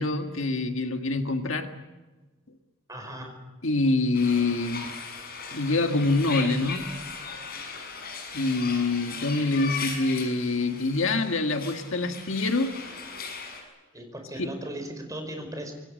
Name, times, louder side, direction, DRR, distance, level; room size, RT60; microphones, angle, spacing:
voice 1, 0.0-1.7 3.6-4.9 5.5-6.9 8.3-12.8 14.4-14.5, left 3 dB, 65° left, 5 dB, 1.8 m, -25 dB
voice 2, 2.9-3.3 13.9-15.7, right 1 dB, 15° right, 4 dB, 5.0 m, -37 dB
sound 1, 4.1-13.6, left 5 dB, 45° left, 6.7 m, -38 dB
26.0 x 23.0 x 6.6 m, 1.2 s
head